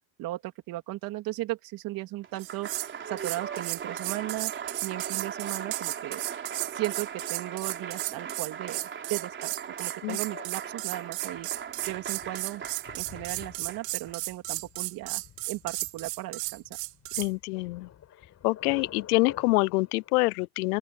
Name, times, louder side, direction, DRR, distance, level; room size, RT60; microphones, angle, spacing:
voice 1, 0.2-4.5 4.8-6.2 6.6-11.5 11.9-12.6 12.9-15.2 15.5-16.6, right 17 dB, 50° right, 3.2 m, -36 dB
Applause, 2.2-14.1, right 7 dB, 25° right, 3.5 m, -39 dB
sound 1, 2.4-2.9 3.2-17.3, right 25 dB, 65° right, 2.2 m, -34 dB
Thunder, 11.3-20.3, left 10 dB, 35° left, 7.5 m, -49 dB
voice 2, 17.2-17.9 18.4-20.8, left 23 dB, 80° left, 0.6 m, -26 dB
open air
supercardioid pair, 115°, 45 cm